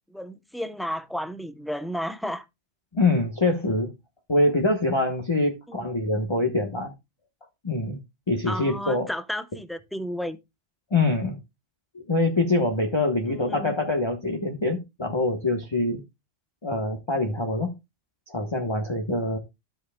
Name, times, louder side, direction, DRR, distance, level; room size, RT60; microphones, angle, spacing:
voice 1, 0.1-2.4 5.7-5.9 8.5-10.4 13.3-13.7, equal, ahead, 0.5 m, -33 dB
voice 2, 2.9-3.9 4.3-6.9 7.6-8.0 8.3-9.1 10.9-11.4 12.1-16.0 16.6-17.7 18.3-19.4, left 2 dB, 25° left, 1.1 m, -24 dB
13.0 x 7.8 x 2.2 m
omnidirectional pair, 1.3 m